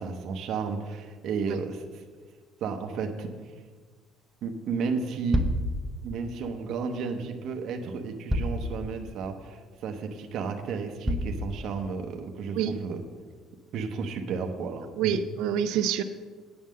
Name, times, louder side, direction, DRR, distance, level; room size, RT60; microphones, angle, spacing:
voice 1, 0.0-2.0 2.6-3.3 4.4-5.5 6.0-13.0 13.7-15.1, right 5 dB, 50° right, 4 dB, 0.8 m, -33 dB
sound 1, 5.3-5.7 7.2-7.3 8.3-8.7 9.2-9.3 9.9-10.0 11.0-11.4, equal, 5° right, 0.5 m, -27 dB
voice 2, 15.0-16.0, right 8 dB, 75° right, 10 dB, 0.4 m, -26 dB
8.7 x 5.6 x 7.4 m, 1.5 s
cardioid pair, 175°, 0 cm